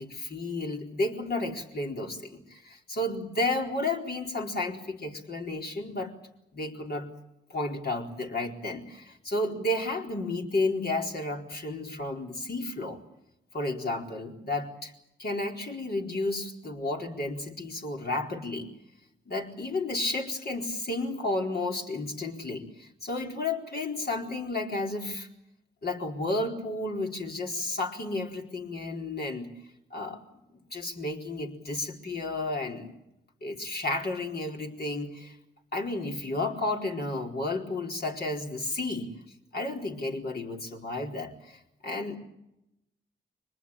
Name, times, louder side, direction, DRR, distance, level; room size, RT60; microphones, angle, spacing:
voice 1, 0.0-6.1 6.5-7.1 7.5-13.0 13.5-14.9 15.2-18.7 19.3-25.3 25.8-29.5 29.9-30.2 30.7-32.9 33.4-35.4 35.7-39.1 39.5-42.2, left 2 dB, 55° left, 1 dB, 4.3 m, -32 dB
24.5 x 20.0 x 8.7 m, 0.87 s
supercardioid pair, 45°, 20 cm